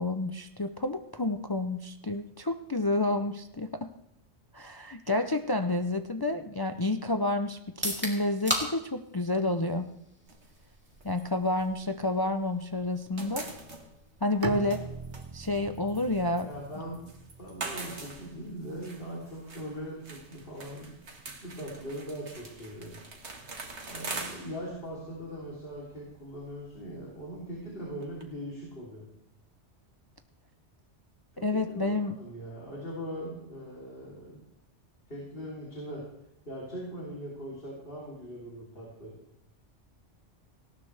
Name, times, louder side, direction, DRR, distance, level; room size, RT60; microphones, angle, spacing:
voice 1, 0.0-3.9 4.5-9.9 11.0-13.5 14.2-14.8 15.3-16.5 31.4-32.2, left 2 dB, 25° left, 7 dB, 0.5 m, -29 dB
sound 1, 7.7-21.5, equal, 10° right, 2.9 m, -42 dB
sound 2, 10.3-12.5 12.8-28.2, right 3 dB, 70° right, 2.1 m, -44 dB
Bowed string instrument, 14.4-18.4, right 3 dB, 25° right, 0.6 m, -41 dB
voice 2, 16.4-17.1 17.4-23.0 23.9-29.1 31.3-34.4 35.1-36.0 36.5-39.2, equal, 50° left, -5 dB, 3.7 m, -41 dB
19.0 x 17.0 x 3.4 m, 0.78 s
omnidirectional pair, 1.2 m